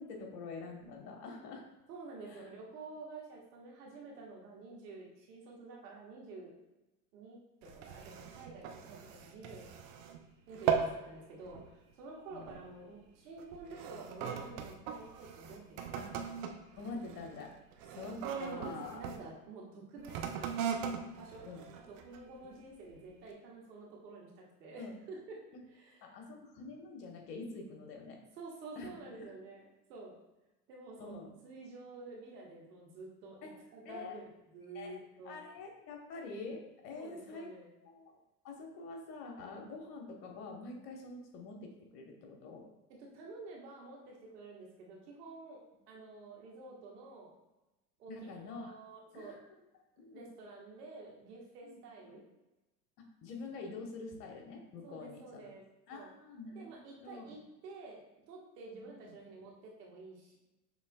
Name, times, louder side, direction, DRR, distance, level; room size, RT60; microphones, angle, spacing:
voice 1, 0.0-1.6 2.3-2.5 12.3-12.6 15.9-16.2 16.8-17.5 17.9-19.1 21.4-21.7 24.8-24.9 26.0-28.2 28.8-29.0 31.0-31.3 33.4-33.5 33.8-34.1 34.7-35.0 35.2-37.5 37.8-38.1 38.4-42.6 48.1-48.7 49.1-49.4 50.0-50.2 51.6-52.1 53.0-55.5 55.9-57.3 58.8-59.2, left 3 dB, 70° left, 2 dB, 1.2 m, -46 dB
voice 2, 1.9-6.5 7.1-9.7 10.5-16.1 18.5-20.5 21.1-21.5 21.7-24.3 24.6-25.4 25.7-26.1 28.4-30.1 30.7-35.4 36.9-37.7 43.0-45.6 45.9-47.3 48.0-49.4 50.1-52.2 54.8-55.6 55.9-56.1 56.5-58.0 58.3-60.4, right 3 dB, 75° right, -2 dB, 1.5 m, -50 dB
sound 1, 7.6-10.2 10.5-11.0 11.4-11.7 12.4-12.7 13.4-19.2 20.0-22.3 22.9-23.0, right 7 dB, 60° right, 0.7 m, -39 dB
6.7 x 3.2 x 2.2 m, 0.99 s
hypercardioid pair, 90°, 48 cm